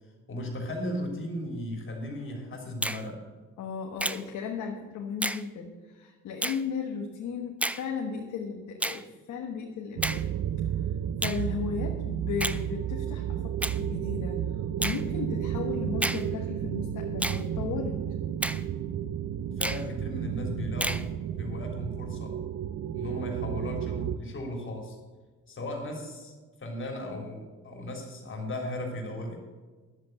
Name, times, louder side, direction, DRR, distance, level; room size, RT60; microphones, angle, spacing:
voice 1, 0.3-3.2 19.6-21.1 21.4-22.4 22.9-25.0 25.5-26.3 26.6-29.4, left 1 dB, 40° left, 1 dB, 3.4 m, -36 dB
Finger snapping, 2.8-3.0 4.0-4.2 5.2-5.4 6.4-6.6 7.6-7.8 8.8-9.0 10.0-10.2 11.2-11.4 12.4-12.6 13.6-13.8 14.8-15.0 16.0-16.2 17.2-17.4 18.4-18.6 19.6-19.8 20.8-21.0, right 1 dB, 5° right, 0.4 m, -30 dB
voice 2, 3.6-10.3 11.2-18.0, left 6 dB, 75° left, 1 dB, 1.5 m, -35 dB
sound 1, 10.0-24.2, right 9 dB, 65° right, 0.6 m, -32 dB
11.0 x 7.5 x 7.9 m, 1.3 s
cardioid pair, 90°, 30 cm